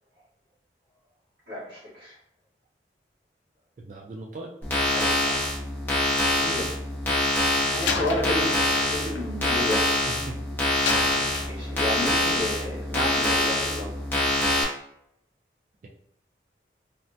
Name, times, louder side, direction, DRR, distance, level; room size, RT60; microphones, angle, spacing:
voice 1, 1.5-2.2 4.9-5.6 6.2-6.8 7.5-9.9 11.0-14.0, left 1 dB, 70° right, -7 dB, 1.4 m, -32 dB
voice 2, 3.8-4.5 10.1-10.4, right 2 dB, 45° right, 1 dB, 0.3 m, -38 dB
sound 1, 4.6-14.6, left 1 dB, 10° left, 0.6 m, -25 dB
Slam, 7.8-10.2 10.8-12.1, left 5 dB, 90° left, 0.4 m, -33 dB
3.2 x 2.1 x 2.6 m, 0.74 s
head